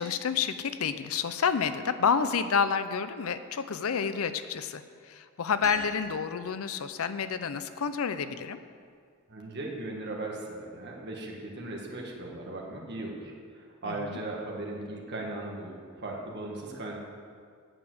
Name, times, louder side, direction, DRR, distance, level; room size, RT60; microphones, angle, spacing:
voice 1, 0.0-8.6 13.8-14.2, left 6 dB, 75° left, 12 dB, 0.5 m, -29 dB
sound 1, 5.6-7.4, right 1 dB, 15° left, 1.3 m, -43 dB
voice 2, 9.3-17.0, right 2 dB, 50° right, -1 dB, 1.6 m, -38 dB
8.7 x 7.0 x 7.9 m, 2.1 s
head